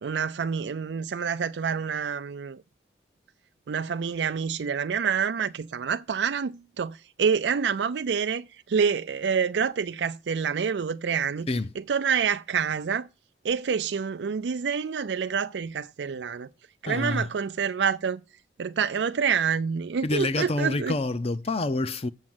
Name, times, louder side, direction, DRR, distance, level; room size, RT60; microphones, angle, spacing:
voice 1, 0.0-2.6 3.7-11.5 11.8-13.1 13.4-16.5 16.8-18.2 18.6-20.9, right 6 dB, 85° right, 0.4 m, -27 dB
voice 2, 16.9-17.3 20.0-22.1, left 2 dB, 35° left, 0.6 m, -27 dB
7.4 x 7.3 x 7.8 m
head